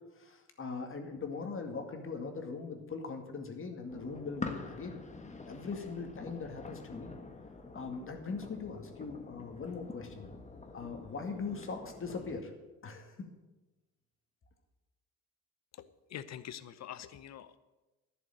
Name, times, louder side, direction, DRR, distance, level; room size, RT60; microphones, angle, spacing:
voice 1, 0.2-5.0 5.5-7.2 7.7-10.3 10.7-12.5 12.8-13.2, left 4 dB, 45° left, 4 dB, 2.0 m, -40 dB
sound 1, 3.9-12.4, left 3 dB, 25° left, 1.4 m, -46 dB
voice 2, 15.7-17.6, left 10 dB, 60° left, 14 dB, 0.8 m, -45 dB
11.0 x 7.1 x 9.2 m, 1.1 s
cardioid pair, 90°, 30 cm